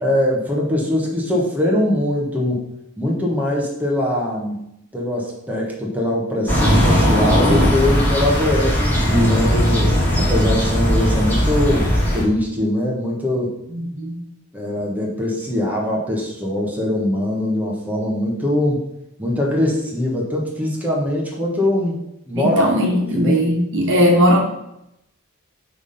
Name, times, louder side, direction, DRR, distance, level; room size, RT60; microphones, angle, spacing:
voice 1, 0.0-4.6 4.9-11.9 12.1-13.6 14.5-18.8 19.2-22.0 22.3-22.7 23.1-23.4, left 1 dB, 5° right, -3 dB, 1.2 m, -22 dB
sound 1, 6.5-12.2, equal, 10° left, 2.1 m, -17 dB
voice 2, 13.7-14.2 22.3-24.4, equal, 60° right, 0 dB, 1.4 m, -18 dB
6.3 x 3.4 x 5.4 m, 0.82 s
head